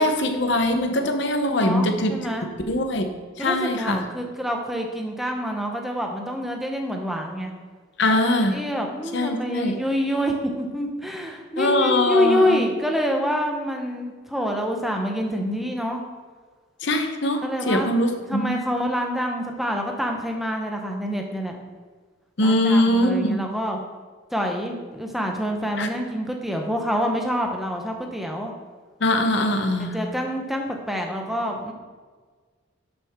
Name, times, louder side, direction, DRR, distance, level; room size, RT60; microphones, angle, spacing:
voice 1, 0.0-2.1 2.7-3.1 3.4-4.0 8.0-8.6 9.1-9.8 11.6-12.6 16.8-18.7 22.4-23.4 25.8-25.9 29.0-30.0, left 1 dB, 60° left, 5 dB, 0.9 m, -22 dB
voice 2, 1.5-2.5 3.4-7.5 8.5-16.0 17.4-17.9 18.3-21.6 22.4-23.8 24.3-28.5 29.8-31.7, equal, ahead, 2 dB, 0.8 m, -26 dB
11.0 x 6.0 x 3.7 m, 1.5 s
head